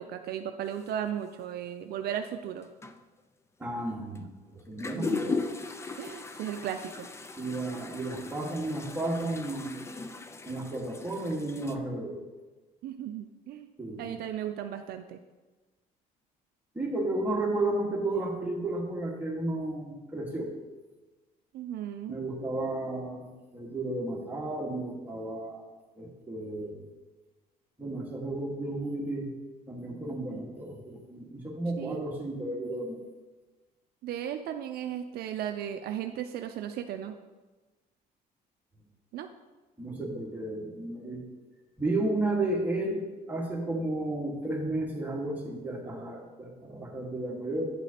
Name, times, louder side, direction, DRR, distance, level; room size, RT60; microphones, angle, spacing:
voice 1, 0.0-2.7 4.9-5.4 6.0-7.1 12.8-13.7 14.0-15.2 21.5-22.2 31.8-32.1 34.0-37.1 39.1-39.3, right 10 dB, 65° right, 7 dB, 0.5 m, -36 dB
sound 1, 0.7-0.9 2.1-2.2 2.6-3.0 4.2-4.3 4.6-11.8, left 4 dB, 15° left, 0.4 m, -38 dB
voice 2, 3.6-5.4 7.4-9.8 10.4-12.2 13.8-14.2 16.7-20.5 22.1-25.6 26.0-26.8 27.8-29.3 29.7-33.0 39.8-41.2 41.8-47.7, right 2 dB, 10° right, -3 dB, 1.7 m, -33 dB
9.7 x 6.0 x 2.9 m, 1.2 s
cardioid pair, 110°, 17 cm